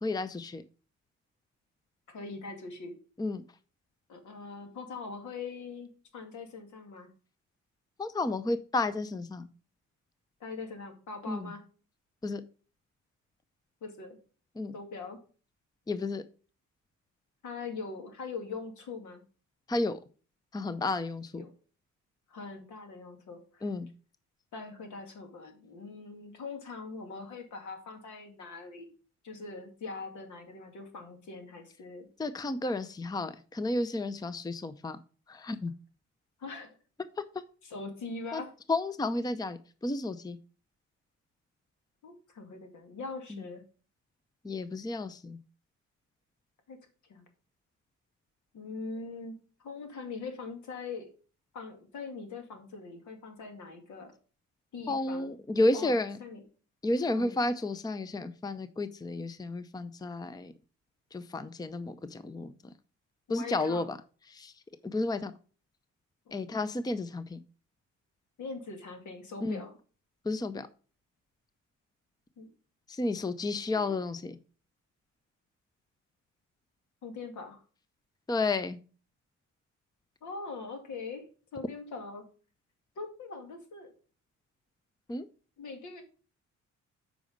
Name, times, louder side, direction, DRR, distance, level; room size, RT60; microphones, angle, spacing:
voice 1, 0.0-0.6 3.2-3.4 8.0-9.5 11.3-11.5 12.2-12.4 14.6-14.7 15.9-16.2 19.7-20.0 20.5-21.5 23.6-23.9 32.2-35.0 35.3-35.7 38.3-38.4 38.7-40.4 43.3-43.4 44.4-45.4 54.9-56.2 56.8-60.5 61.1-62.7 63.3-64.0 64.3-64.5 64.8-65.3 66.3-67.4 69.4-69.6 70.2-70.7 72.9-74.4 78.3-78.8 85.1-85.3, left 2 dB, 15° left, 13 dB, 0.6 m, -32 dB
voice 2, 2.1-2.9 4.1-7.1 10.4-11.6 13.8-14.2 14.7-15.2 17.4-19.2 21.4-21.5 22.3-23.7 24.5-28.9 29.2-32.1 36.4-36.7 37.6-38.5 42.0-43.6 46.7-46.8 47.1-47.2 48.5-49.3 49.6-51.1 51.5-54.1 54.7-55.9 56.2-56.4 57.2-57.4 63.3-63.9 66.3-66.4 68.4-69.7 72.4-72.5 73.8-73.9 77.0-77.6 80.2-81.2 81.5-82.2 83.0-83.9 85.6-86.0, left 4 dB, 75° left, 5 dB, 2.3 m, -42 dB
8.2 x 5.1 x 5.2 m, 0.37 s
cardioid pair, 90°, 30 cm